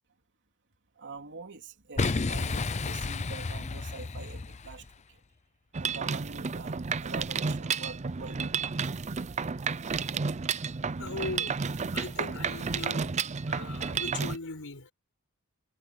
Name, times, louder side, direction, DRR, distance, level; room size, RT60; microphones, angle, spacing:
voice 1, 1.0-5.2 5.8-8.7, right 4 dB, 55° right, 3.4 m, -45 dB
Boom, 2.0-4.9, left 3 dB, 30° left, 0.6 m, -32 dB
Mechanisms, 5.7-14.4, right 5 dB, 30° right, 0.5 m, -32 dB
voice 2, 11.0-11.6 11.9-13.1 13.5-14.9, left 3 dB, 65° left, 5.6 m, -39 dB
head